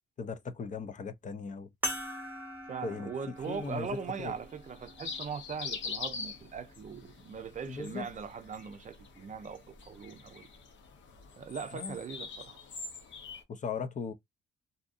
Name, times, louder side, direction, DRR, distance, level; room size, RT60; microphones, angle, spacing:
voice 1, 0.2-1.7 2.8-4.3 7.7-8.1 11.7-12.0 13.5-14.1, left 5 dB, 40° left, 0.5 m, -38 dB
sound 1, 1.8-6.6 7.4-7.5 9.7-9.8, equal, 10° right, 0.9 m, -42 dB
voice 2, 2.7-10.5 11.4-12.6, right 6 dB, 40° right, 0.5 m, -40 dB
sound 2, 3.4-13.4, left 5 dB, 70° left, 0.8 m, -44 dB
2.7 x 2.5 x 2.4 m
cardioid pair, 90°, 20 cm